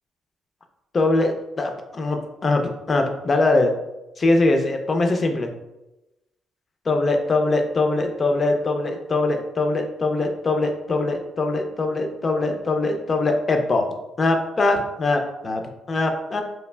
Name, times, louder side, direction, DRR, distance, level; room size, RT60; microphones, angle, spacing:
voice 1, 0.9-2.6 2.9-3.7 4.2-5.5 6.9-13.9 14.2-15.6 15.9-16.4, left 2 dB, 35° left, 4 dB, 0.4 m, -22 dB
3.1 x 2.3 x 2.2 m, 0.95 s
cardioid pair, 90°, 0 cm